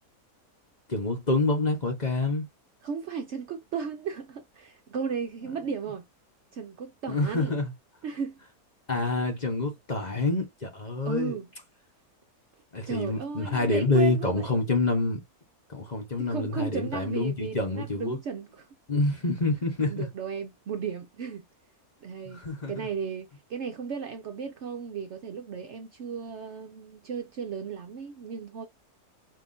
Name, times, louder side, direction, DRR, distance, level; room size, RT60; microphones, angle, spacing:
voice 1, 0.9-2.4 7.1-7.7 8.9-11.3 12.7-15.2 15.7-18.2 18.9-20.1 22.3-22.7, left 2 dB, 30° left, 1.1 m, -27 dB
voice 2, 2.8-6.1 6.5-7.5 8.0-8.4 11.0-11.5 12.9-14.6 16.2-18.7 19.8-21.5 22.0-28.7, right 6 dB, 60° right, 0.8 m, -35 dB
5.6 x 2.9 x 2.6 m
omnidirectional pair, 1.6 m